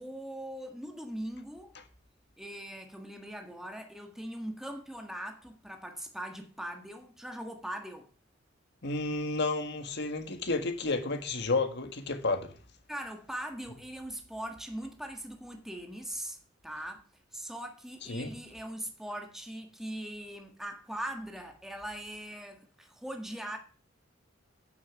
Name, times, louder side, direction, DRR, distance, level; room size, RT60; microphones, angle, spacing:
voice 1, 0.0-1.7 2.4-8.1 12.9-16.4 16.6-17.0 17.3-23.6, right 1 dB, ahead, 1.6 m, -41 dB
voice 2, 8.8-12.5 18.0-18.3, left 3 dB, 60° left, 1.8 m, -31 dB
9.7 x 7.0 x 7.1 m
head